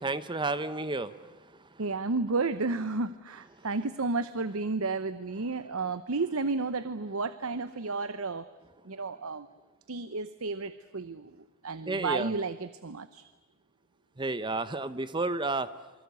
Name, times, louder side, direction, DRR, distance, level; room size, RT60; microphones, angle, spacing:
voice 1, 0.0-1.3 1.7-1.8 11.9-12.3 14.2-15.7, right 3 dB, 20° right, 13 dB, 0.9 m, -31 dB
voice 2, 1.8-8.5 8.8-9.5 9.9-13.2, right 3 dB, 70° right, 13 dB, 0.9 m, -32 dB
26.5 x 24.5 x 8.2 m, 1.1 s
head